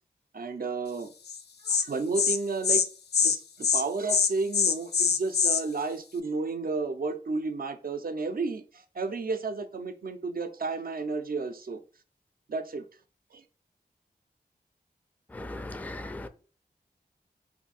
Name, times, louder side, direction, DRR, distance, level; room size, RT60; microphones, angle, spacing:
voice 1, 0.3-1.1 1.6-2.8 3.2-11.8 12.5-12.9 13.3-13.4, right 3 dB, 60° right, 0.5 m, -32 dB
Insect, 1.3-1.4 1.7-1.8 2.1-2.4 2.6-2.8 3.1-3.4 3.6-3.8 4.1-5.6, left 6 dB, 75° left, 0.4 m, -24 dB
voice 2, 15.3-16.3, left 2 dB, 10° left, 0.4 m, -38 dB
2.7 x 2.6 x 4.1 m
cardioid pair, 45°, 17 cm